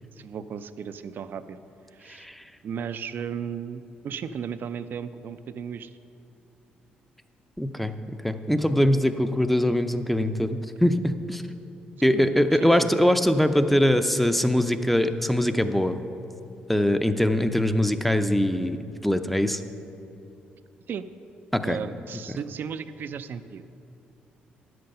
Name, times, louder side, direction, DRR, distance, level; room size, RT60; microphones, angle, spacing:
voice 1, 0.2-1.6 1.9-2.3 2.6-6.0 12.1-12.3 12.6-12.9 20.9-21.0 21.6-23.6, right 7 dB, 60° right, 12 dB, 0.5 m, -35 dB
voice 2, 2.1-2.4 7.6-11.4 12.0-16.0 16.7-19.6 21.5-21.8, left 1 dB, 5° left, 9 dB, 0.6 m, -22 dB
10.0 x 7.8 x 5.6 m, 2.8 s
supercardioid pair, 60°, 4 cm